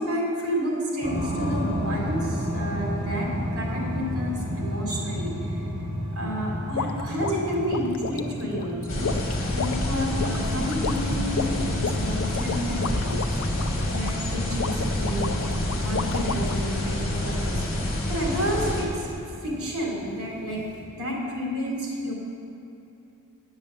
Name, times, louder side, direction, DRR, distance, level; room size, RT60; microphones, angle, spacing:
voice 1, 0.0-5.6 6.1-9.1 9.5-13.4 13.9-17.6 18.1-19.1 19.4-20.6 21.0-22.1, equal, 80° right, -2 dB, 2.8 m, -30 dB
sound 1, 1.0-20.8, equal, 20° right, 2.6 m, -34 dB
sound 2, 6.8-16.7, left 5 dB, 70° left, 0.5 m, -33 dB
sound 3, 8.9-18.8, left 1 dB, 40° left, 2.1 m, -27 dB
10.5 x 6.5 x 7.4 m, 2.8 s
head